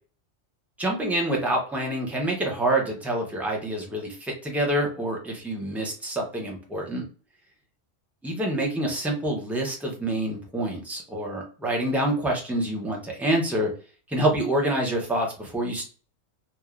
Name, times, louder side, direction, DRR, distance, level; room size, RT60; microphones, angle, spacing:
voice 1, 0.8-7.0 8.2-13.7 14.1-15.8, right 1 dB, ahead, -1 dB, 0.4 m, -27 dB
3.1 x 2.3 x 2.4 m, 0.38 s
omnidirectional pair, 1.3 m